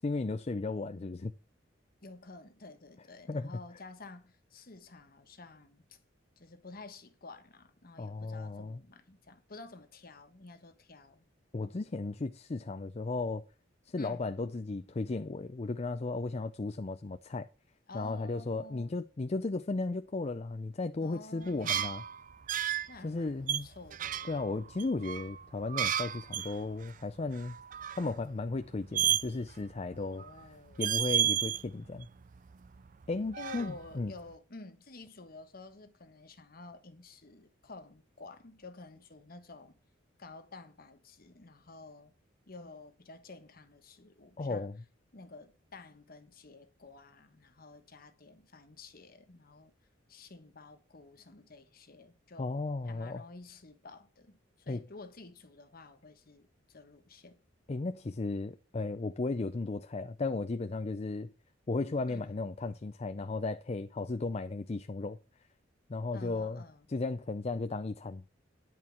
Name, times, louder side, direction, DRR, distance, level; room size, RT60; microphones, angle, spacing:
voice 1, 0.0-1.3 3.3-3.5 8.0-8.8 11.5-13.4 13.9-17.5 17.9-22.0 23.0-23.7 24.3-27.6 28.0-30.2 30.8-32.1 33.1-34.1 44.4-44.8 52.4-53.2 54.7-54.8 57.7-61.3 61.7-65.2 65.9-66.6 66.9-68.2, left 3 dB, 35° left, 0.5 m, -35 dB
voice 2, 2.0-6.0 6.4-11.2 14.0-14.4 17.9-19.0 21.0-21.9 22.9-24.4 30.0-30.9 33.3-39.8 40.2-42.1 42.5-44.7 45.1-49.7 50.1-52.5 52.8-57.4 62.1-62.4 66.1-66.9, left 3 dB, 50° left, 1.3 m, -51 dB
sound 1, 21.5-22.9 23.5-26.6 26.8-26.9 27.3-28.1 28.9-29.6 29.9-30.4 30.7-31.6 32.0-33.0 33.3-34.1, right 10 dB, 40° right, 0.4 m, -32 dB
10.5 x 4.6 x 7.2 m
head